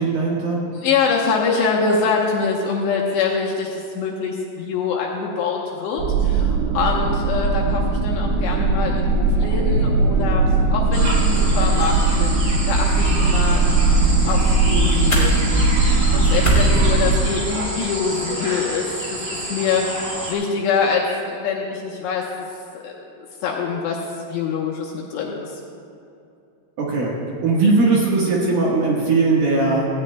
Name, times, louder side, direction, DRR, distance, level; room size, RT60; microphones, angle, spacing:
voice 1, 0.0-0.6 18.3-18.4 26.8-27.1 27.4-29.9, right 3 dB, 65° right, -5 dB, 2.5 m, -19 dB
voice 2, 0.7-10.4 10.7-13.7 14.3-15.4 16.1-22.3 22.7-24.0 24.3-25.6, left 5 dB, 75° left, -2 dB, 2.7 m, -24 dB
sound 1, 6.0-17.2, right 3 dB, 90° right, 3.5 m, -19 dB
sound 2, 10.9-20.3, right 1 dB, 35° right, 2.4 m, -29 dB
sound 3, 14.0-17.9, equal, 55° left, 0.4 m, -28 dB
18.0 x 16.5 x 2.2 m, 2.6 s
omnidirectional pair, 5.7 m